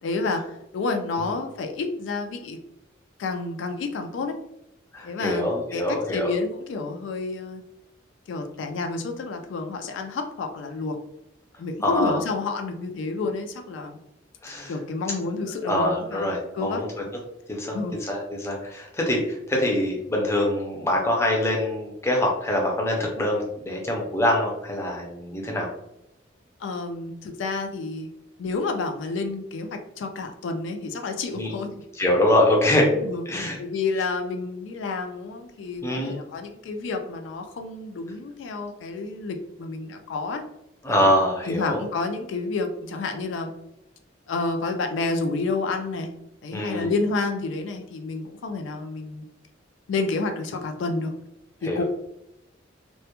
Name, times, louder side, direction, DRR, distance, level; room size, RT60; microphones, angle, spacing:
voice 1, 0.0-2.6 3.2-4.3 5.0-7.6 8.3-11.0 11.6-14.0 14.7-16.8 17.7-18.0 26.6-28.1 28.4-31.7 32.9-33.2 33.6-40.4 40.9-41.1 41.5-43.5 44.3-46.1 46.4-49.3 49.9-51.1 51.6-51.8, left 3 dB, 75° left, 5 dB, 0.3 m, -29 dB
voice 2, 4.9-6.3 11.8-12.2 14.4-14.7 15.6-16.9 17.5-25.7 31.3-31.5 32.0-32.9 33.3-33.6 35.8-36.2 40.8-41.8 46.5-46.9 51.6-51.8, left 1 dB, 15° left, -1 dB, 0.4 m, -24 dB
2.1 x 2.1 x 2.8 m, 0.82 s
head